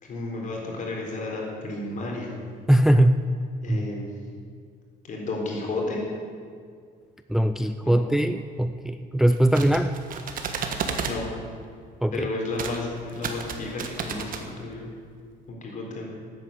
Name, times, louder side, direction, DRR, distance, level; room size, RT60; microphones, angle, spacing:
voice 1, 0.0-2.3 3.6-4.1 5.0-6.0 7.8-8.1 11.1-11.3 12.1-14.3 14.6-14.9 15.5-16.0, left 2 dB, 50° left, -1 dB, 4.2 m, -32 dB
voice 2, 2.7-3.2 3.7-3.8 7.3-9.9 12.0-12.3, right 1 dB, ahead, 9 dB, 0.4 m, -21 dB
sound 1, 9.3-11.2 12.5-12.8 13.1-14.4, right 6 dB, 55° right, 1.5 m, -32 dB
12.0 x 9.2 x 8.6 m, 2.2 s
cardioid pair, 110°, 17 cm